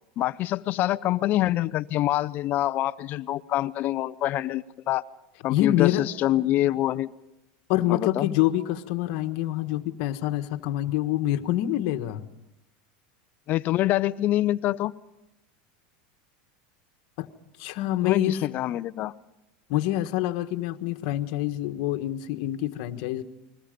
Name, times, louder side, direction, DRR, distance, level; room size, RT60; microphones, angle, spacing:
voice 1, 0.2-5.0 5.4-5.9 6.2-7.1 7.9-8.3 13.5-14.9 18.0-19.1, left 14 dB, 40° left, 16 dB, 0.7 m, -25 dB
voice 2, 5.5-6.1 7.7-12.3 17.2-17.3 17.6-18.4 19.7-23.2, left 13 dB, 60° left, 7 dB, 1.4 m, -26 dB
29.5 x 21.5 x 5.2 m, 0.90 s
supercardioid pair, 140°, 5 cm